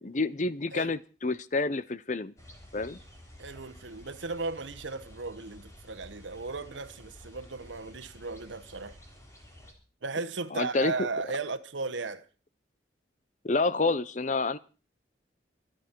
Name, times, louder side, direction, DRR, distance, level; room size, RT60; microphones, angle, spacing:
voice 1, 0.0-2.3 2.7-3.0 10.5-10.9 13.4-14.6, left 3 dB, 40° left, 0.7 m, -28 dB
sound 1, 2.4-9.7, left 1 dB, 15° left, 3.6 m, -51 dB
voice 2, 3.4-9.0 10.0-12.3, right 3 dB, 90° right, 1.1 m, -36 dB
26.0 x 9.2 x 4.6 m
head